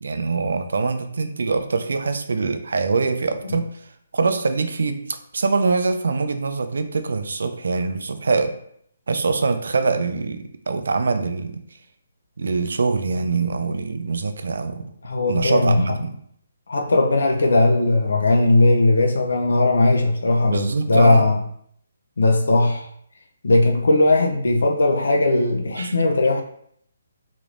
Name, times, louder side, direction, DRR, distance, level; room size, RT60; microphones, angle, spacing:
voice 1, 0.0-3.7 4.1-8.6 9.1-11.6 12.4-14.9 15.3-16.1 20.4-21.2 25.8-25.9, right 4 dB, 70° right, 8 dB, 0.4 m, -23 dB
voice 2, 15.0-15.8 16.7-21.4 22.2-22.9 23.4-26.4, left 2 dB, 80° left, 2 dB, 0.5 m, -18 dB
3.2 x 3.0 x 2.5 m, 0.66 s
hypercardioid pair, 175°, 0 cm